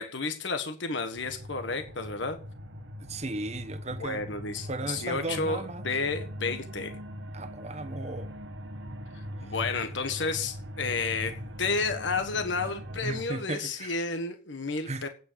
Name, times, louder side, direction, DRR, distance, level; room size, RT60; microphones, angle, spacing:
voice 1, 0.0-2.4 4.0-7.0 9.4-15.1, left 4 dB, 70° left, 1.5 m, -31 dB
sound 1, 1.1-13.2, equal, 90° right, 1.6 m, -41 dB
voice 2, 3.1-4.2 4.7-5.8 7.3-8.3 13.0-14.0 14.9-15.1, right 2 dB, 35° right, 1.1 m, -35 dB
9.2 x 8.2 x 7.6 m
head